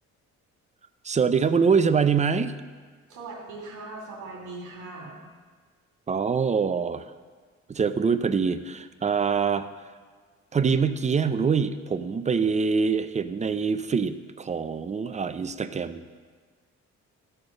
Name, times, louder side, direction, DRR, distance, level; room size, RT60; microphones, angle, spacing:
voice 1, 1.0-2.5 6.1-7.0 7.7-9.9 10.5-16.2, right 5 dB, 25° right, 11 dB, 0.5 m, -24 dB
voice 2, 3.1-5.2, right 3 dB, 90° right, -1 dB, 2.5 m, -39 dB
12.5 x 4.4 x 6.5 m, 1.5 s
cardioid pair, 90°, 30 cm